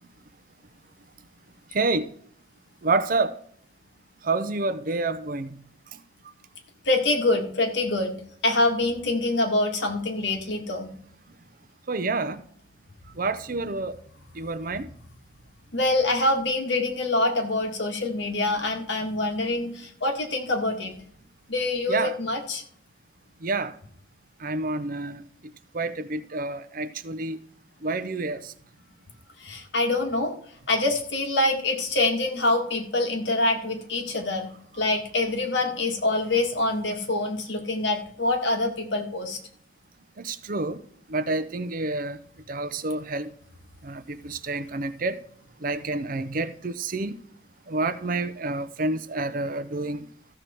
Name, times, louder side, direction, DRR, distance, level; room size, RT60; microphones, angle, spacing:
voice 1, 1.7-2.1 2.8-3.3 4.2-5.6 11.9-12.4 13.2-13.9 14.4-14.9 21.9-22.2 23.4-23.7 24.4-25.2 25.7-27.4 27.8-28.5 40.2-40.8 41.1-42.2 42.5-43.3 43.8-45.2 45.6-47.1 47.7-50.1, right 3 dB, 45° right, 0.6 m, -28 dB
voice 2, 6.9-8.1 8.4-10.9 15.7-20.9 21.5-22.6 29.4-30.3 30.7-34.5 34.8-39.4, left 2 dB, 60° left, 1.8 m, -25 dB
14.5 x 6.6 x 4.4 m
head